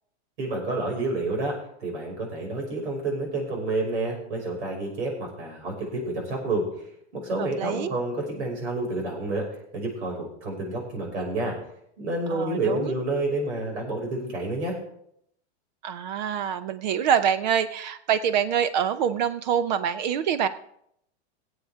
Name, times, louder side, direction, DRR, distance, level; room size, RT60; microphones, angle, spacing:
voice 1, 0.4-6.7 7.1-9.4 9.7-11.5 12.0-14.8, right 2 dB, 80° right, 0 dB, 5.7 m, -29 dB
voice 2, 7.4-7.9 12.3-12.9 15.8-20.5, right 8 dB, 40° right, 13 dB, 0.6 m, -25 dB
20.0 x 8.1 x 3.6 m, 0.73 s
supercardioid pair, 170°, 33 cm